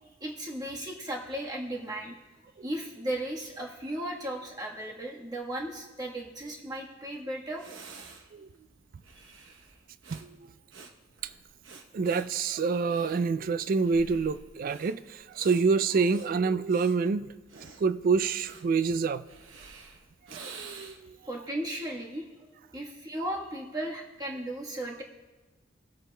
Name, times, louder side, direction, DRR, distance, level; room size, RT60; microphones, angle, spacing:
voice 1, 0.0-2.2 2.6-7.8 9.2-9.3 21.2-25.0, right 1 dB, 20° right, 1.3 m, -36 dB
Breathing, 7.1-7.2 7.5-21.2, right 4 dB, 90° right, 0.9 m, -50 dB
voice 2, 11.9-17.3 17.8-19.2 20.3-21.2, right 4 dB, 45° right, 0.3 m, -27 dB
18.5 x 8.0 x 2.2 m
head